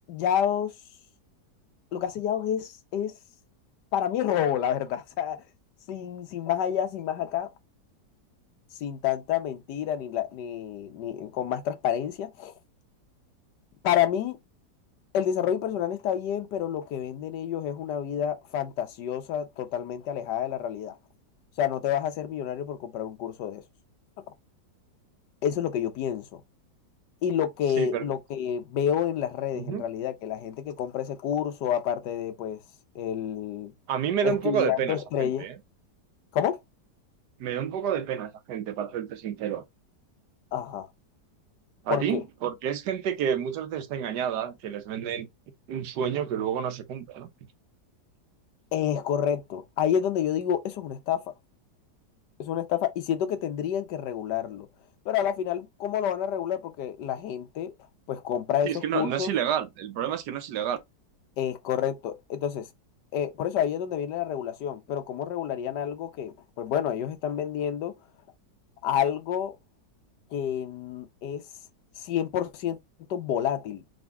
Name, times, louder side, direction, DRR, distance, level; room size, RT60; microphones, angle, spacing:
voice 1, 0.1-0.7 1.9-3.1 3.9-5.4 5.9-7.5 8.8-12.5 13.8-14.4 15.1-21.0 21.6-23.6 25.4-26.2 27.2-32.6 32.9-33.7 34.2-35.5 36.3-36.6 40.5-40.9 41.9-42.2 48.7-51.3 52.4-54.7 55.0-57.7 58.1-59.3 61.4-62.7 63.1-67.9 68.8-69.6 70.3-71.4 72.0-72.8 73.1-73.8, left 9 dB, 75° left, 1.4 m, -29 dB
voice 2, 33.9-35.5 37.4-39.6 41.8-45.3 45.7-47.3 58.6-60.8, right 8 dB, 75° right, 1.4 m, -29 dB
3.9 x 3.5 x 3.3 m
omnidirectional pair, 1.9 m